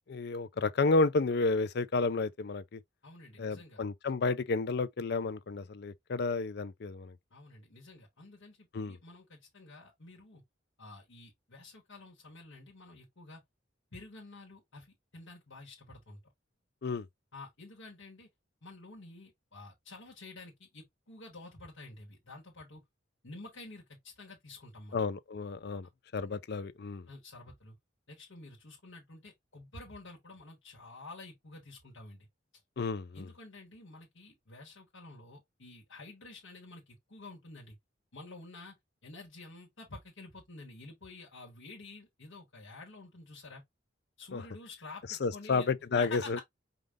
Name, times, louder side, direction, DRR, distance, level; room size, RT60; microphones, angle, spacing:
voice 1, 0.1-2.8 3.4-7.1 8.7-9.0 16.8-17.1 24.9-27.0 32.8-33.3 44.3-44.4 45.1-46.4, left 3 dB, 55° left, 0.5 m, -31 dB
voice 2, 3.0-3.8 7.3-10.4 10.8-13.4 13.9-16.2 17.3-18.3 18.6-22.8 23.2-25.0 27.1-27.7 28.1-32.3 33.1-37.8 38.1-43.6 44.2-46.4, left 3 dB, 80° left, 1.5 m, -50 dB
5.2 x 2.4 x 3.6 m
head